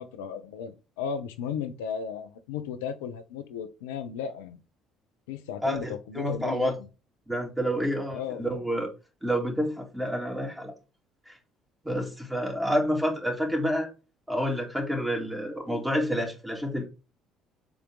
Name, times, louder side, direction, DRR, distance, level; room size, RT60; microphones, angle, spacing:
voice 1, 0.0-4.6 5.3-6.9 8.1-8.4, left 7 dB, 70° left, 0.7 m, -35 dB
voice 2, 5.6-6.7 7.3-8.9 9.2-10.7 11.3-11.4 11.8-13.9 14.3-16.9, equal, 5° right, 2.4 m, -29 dB
7.1 x 3.6 x 3.7 m
figure-of-eight pair, 55°, 0 cm